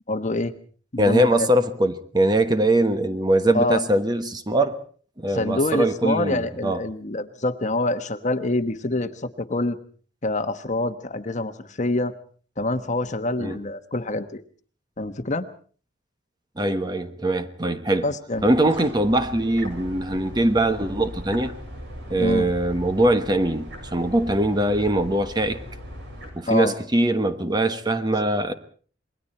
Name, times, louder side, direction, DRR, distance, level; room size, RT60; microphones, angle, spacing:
voice 1, 0.1-0.5 0.9-1.5 3.5-3.8 5.3-9.8 10.2-12.1 12.6-14.4 15.0-15.5 18.0-18.5 22.1-22.5 26.5-26.7, left 2 dB, 40° left, 1.2 m, -26 dB
voice 2, 1.0-4.8 5.2-6.8 13.4-13.5 16.6-18.1 18.4-21.5 22.1-25.6 26.3-28.5, right 1 dB, 20° right, 1.3 m, -22 dB
sound 1, 18.3-26.3, equal, 60° right, 7.4 m, -39 dB
27.5 x 22.0 x 4.3 m
head